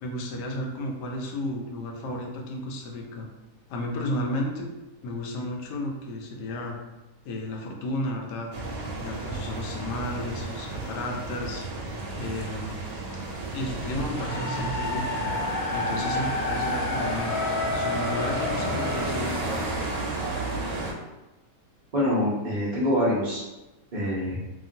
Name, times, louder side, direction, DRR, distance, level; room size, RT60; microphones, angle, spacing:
voice 1, 0.0-3.3 3.7-4.7 5.0-6.8 7.2-8.5 9.0-11.7 12.2-12.8 13.5-15.2 15.7-17.3 17.7-19.7, left 1 dB, 80° left, 1 dB, 1.1 m, -33 dB
sound 1, 8.5-20.9, right 2 dB, 70° right, 1.0 m, -32 dB
sound 2, 14.1-20.3, left 3 dB, 65° left, 0.6 m, -31 dB
voice 2, 21.9-23.4 23.9-24.4, left 1 dB, 50° right, -7 dB, 0.5 m, -25 dB
2.8 x 2.4 x 2.6 m, 1.0 s
omnidirectional pair, 1.8 m